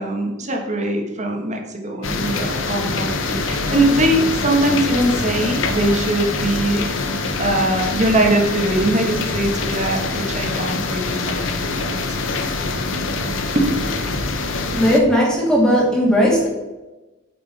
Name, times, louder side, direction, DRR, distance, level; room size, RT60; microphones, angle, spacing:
voice 1, 0.0-6.9 7.4-11.9 13.5-13.7, right 1 dB, 40° right, 2 dB, 1.5 m, -21 dB
sound 1, 2.0-15.0, left 3 dB, 85° left, 0.9 m, -24 dB
voice 2, 14.7-16.5, equal, 5° left, -4 dB, 2.4 m, -16 dB
9.2 x 5.4 x 4.2 m, 1.1 s
head